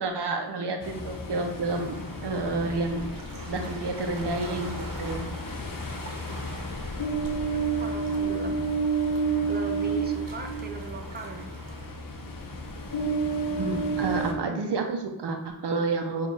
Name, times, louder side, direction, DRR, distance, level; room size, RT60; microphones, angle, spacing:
voice 1, 0.0-3.1 3.4-5.3 13.6-16.3, right 3 dB, 90° right, 4 dB, 0.6 m, -30 dB
Ocean, 0.8-14.3, right 3 dB, 55° left, 0.7 m, -31 dB
sound 1, 1.7-11.9, right 2 dB, 55° right, 0.8 m, -46 dB
voice 2, 7.5-8.7 9.5-11.5, right 3 dB, 25° right, 3 dB, 0.6 m, -39 dB
7.0 x 2.4 x 3.2 m, 0.87 s
wide cardioid pair, 50°, 40 cm